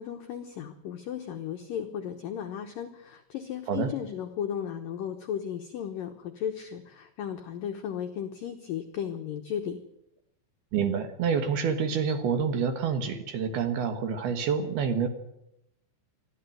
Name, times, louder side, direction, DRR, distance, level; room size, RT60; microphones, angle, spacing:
voice 1, 0.0-9.8, left 9 dB, 80° left, 5 dB, 2.0 m, -35 dB
voice 2, 10.7-15.1, right 6 dB, 65° right, 8 dB, 2.9 m, -27 dB
23.0 x 13.5 x 9.2 m, 0.84 s
omnidirectional pair, 5.7 m